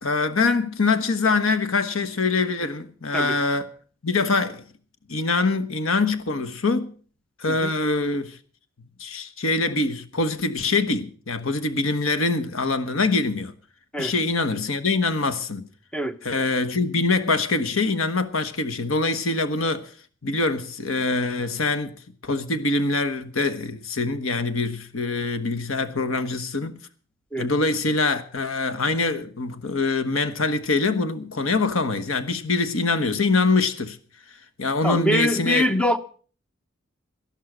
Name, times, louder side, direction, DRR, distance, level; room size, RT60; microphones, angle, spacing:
voice 1, 0.0-3.7 4.0-4.6 5.1-6.9 7.4-8.4 9.0-13.5 14.0-15.7 16.2-19.9 20.2-21.9 22.2-26.8 27.4-34.0 34.6-35.7, left 3 dB, 85° left, 1.3 m, -24 dB
voice 2, 34.8-36.0, equal, 5° left, 0.8 m, -24 dB
12.0 x 12.0 x 6.1 m
head